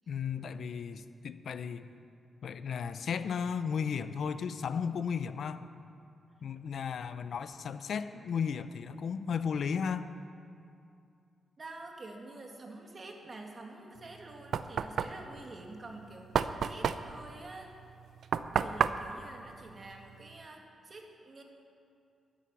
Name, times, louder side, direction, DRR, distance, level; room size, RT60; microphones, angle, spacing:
voice 1, 0.1-1.9 2.4-5.6 6.4-10.1, left 6 dB, 65° left, 12 dB, 0.5 m, -34 dB
voice 2, 11.6-17.7 18.5-21.4, right 2 dB, 40° right, 2 dB, 1.9 m, -47 dB
Knock, 14.0-20.4, right 7 dB, 70° right, 0.5 m, -33 dB
12.5 x 10.0 x 6.9 m, 2.5 s
cardioid pair, 95°, 0 cm